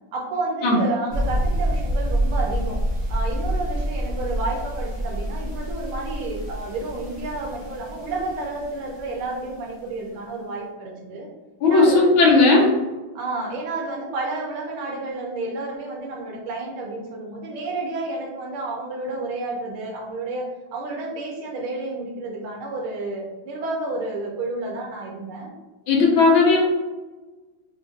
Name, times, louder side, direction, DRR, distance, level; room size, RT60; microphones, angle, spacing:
voice 1, 0.1-2.8 3.1-11.3 11.6-12.2 13.1-25.5, right 2 dB, 85° right, 0 dB, 1.6 m, -30 dB
sound 1, 1.1-9.5, right 1 dB, 40° right, 0.3 m, -27 dB
voice 2, 11.6-12.7 25.9-26.6, left 3 dB, 75° left, -3 dB, 1.7 m, -15 dB
4.3 x 2.4 x 2.6 m, 1.2 s
omnidirectional pair, 2.3 m